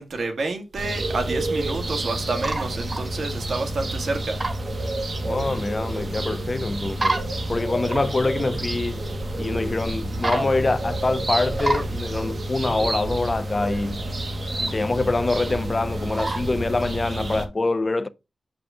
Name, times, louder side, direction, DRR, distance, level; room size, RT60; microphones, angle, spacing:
voice 1, 0.0-4.4, right 3 dB, 70° right, 1.8 m, -29 dB
sound 1, 0.8-17.5, right 1 dB, 50° right, 1.1 m, -30 dB
sound 2, 2.1-4.6 4.9-6.2 6.9-8.8 9.1-9.2 9.4-9.5 9.8-9.9 10.1-10.8 11.1-12.0 12.7-13.1 13.5-13.8 14.2-14.7 15.4-15.6 16.1-16.4, right 2 dB, 30° right, 1.3 m, -29 dB
voice 2, 5.2-7.2 7.5-9.0 9.4-14.0 14.6-18.1, left 3 dB, 30° left, 0.4 m, -25 dB
7.0 x 5.2 x 3.6 m
wide cardioid pair, 140°, 0 cm